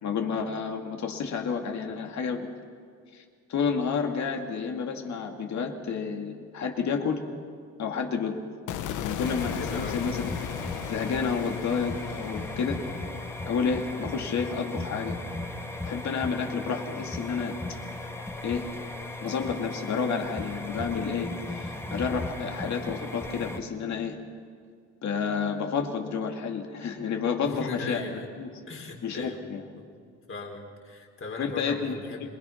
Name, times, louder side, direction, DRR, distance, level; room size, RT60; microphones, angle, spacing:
voice 1, 0.0-2.5 3.1-3.2 3.5-7.2 7.8-8.4 9.0-10.2 10.9-12.8 13.5-15.2 15.8-17.5 18.4-18.7 19.2-24.2 25.0-28.0 28.4-28.5 29.0-29.6 31.4-32.3, left 6 dB, 65° left, 3 dB, 2.5 m, -30 dB
sound 1, 8.7-14.9, left 9 dB, 85° left, 1.1 m, -37 dB
sound 2, 9.2-23.6, left 2 dB, 10° left, 1.9 m, -37 dB
voice 2, 9.6-10.0 27.4-28.3 28.7-29.4 29.8-29.9 30.3-32.3, left 3 dB, 45° left, 1 dB, 3.9 m, -38 dB
26.0 x 20.5 x 5.9 m, 2.2 s
cardioid pair, 90°, 30 cm